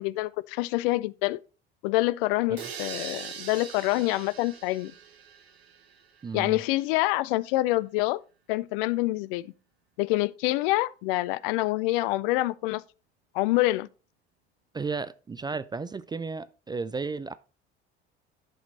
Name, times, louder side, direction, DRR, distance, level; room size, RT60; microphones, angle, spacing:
voice 1, 0.0-1.4 1.8-4.9 6.3-8.2 8.5-9.5 10.0-12.8 13.3-13.9, left 19 dB, 60° left, 0.5 m, -26 dB
sound 1, 2.6-6.3, right 7 dB, 75° right, 1.0 m, -42 dB
voice 2, 6.2-6.6 14.7-17.3, right 4 dB, 15° right, 0.4 m, -33 dB
11.0 x 5.1 x 4.0 m
figure-of-eight pair, 60°, 32 cm